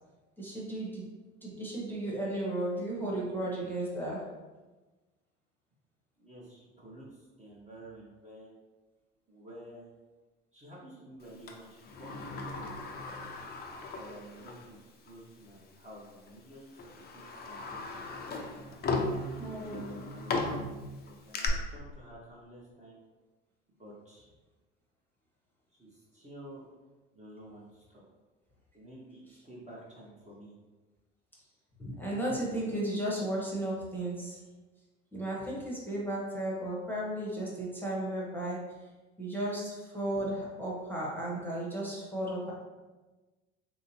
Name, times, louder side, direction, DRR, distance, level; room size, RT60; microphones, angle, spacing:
voice 1, 0.4-1.1 1.4-4.2 19.4-20.0 31.8-34.4 35.1-38.6 39.2-42.5, right 1 dB, 5° left, -5 dB, 0.9 m, -34 dB
voice 2, 6.2-8.6 9.3-9.9 10.5-12.6 13.9-16.9 17.1-17.8 18.7-20.6 20.9-23.0 23.8-24.3 25.7-26.7 27.1-28.0 28.7-30.5, right 1 dB, 20° right, -5 dB, 0.9 m, -51 dB
Sliding door, 11.5-14.7 15.1-15.2 16.1-16.3 16.8-21.5, left 3 dB, 25° left, 0.5 m, -37 dB
3.2 x 2.8 x 2.9 m, 1.2 s
hypercardioid pair, 65°, 35 cm